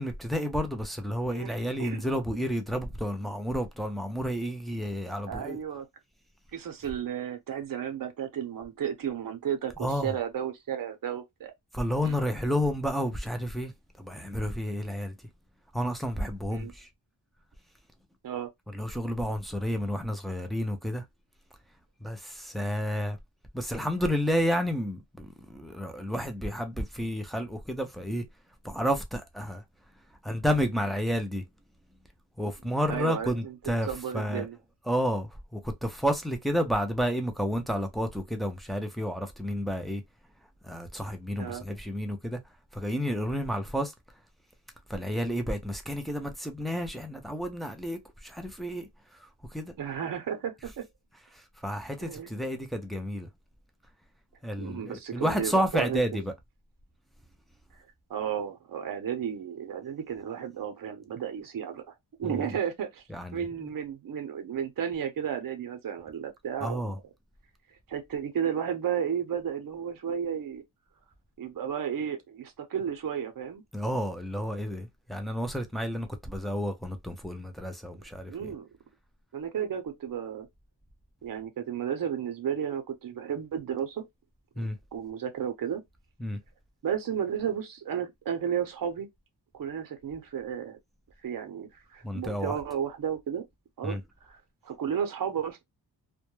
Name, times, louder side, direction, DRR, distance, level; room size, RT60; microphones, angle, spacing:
voice 1, 0.0-5.6 9.8-10.1 11.7-13.7 14.0-15.2 15.7-16.9 18.7-21.0 22.0-23.2 23.5-28.2 28.6-29.6 30.2-31.4 32.4-33.9 34.1-34.5 34.9-40.0 40.6-42.4 42.7-43.9 44.9-48.9 49.5-49.7 51.6-53.3 54.4-56.3 62.2-62.4 63.1-63.5 66.6-67.0 73.7-78.5 84.6-84.8 86.2-86.4 92.0-92.6 93.8-94.0, equal, ahead, 0.3 m, -31 dB
voice 2, 5.2-5.9 6.5-11.5 12.0-12.2 16.5-16.7 18.2-18.5 32.9-34.6 41.4-41.6 49.8-50.9 52.0-52.3 54.6-56.2 58.1-61.8 62.2-63.0 63.3-66.9 67.9-70.6 71.4-73.6 78.3-78.7 79.3-80.5 81.2-84.1 84.6-85.8 86.8-89.1 89.5-90.8 91.2-93.5 93.8-94.4 94.6-95.6, right 8 dB, 50° right, 0.6 m, -33 dB
2.2 x 2.1 x 2.9 m
wide cardioid pair, 135°, 42 cm